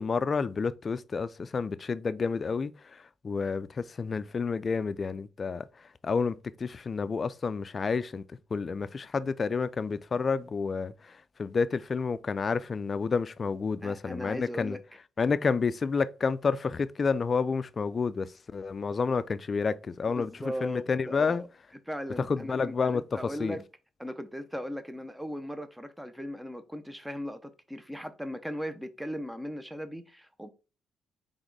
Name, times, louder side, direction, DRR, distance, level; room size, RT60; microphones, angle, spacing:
voice 1, 0.0-14.8 15.2-20.3 20.6-21.4 22.2-23.6, left 5 dB, 40° left, 0.4 m, -30 dB
voice 2, 13.8-14.8 20.1-21.5 21.9-23.6 24.0-30.5, equal, 5° right, 0.6 m, -38 dB
4.0 x 3.5 x 3.3 m
cardioid pair, 90°, 0 cm